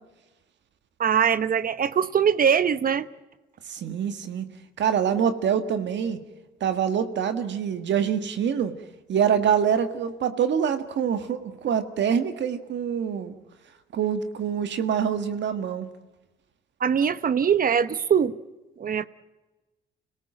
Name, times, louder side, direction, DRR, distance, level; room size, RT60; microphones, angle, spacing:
voice 1, 1.0-3.1 16.8-18.3 18.8-19.0, right 7 dB, 45° right, 0.9 m, -22 dB
voice 2, 3.7-4.5 4.8-6.2 6.6-8.8 9.1-13.3 13.9-15.9, right 8 dB, 65° right, 1.8 m, -25 dB
26.0 x 18.0 x 7.6 m
cardioid pair, 90°, 20 cm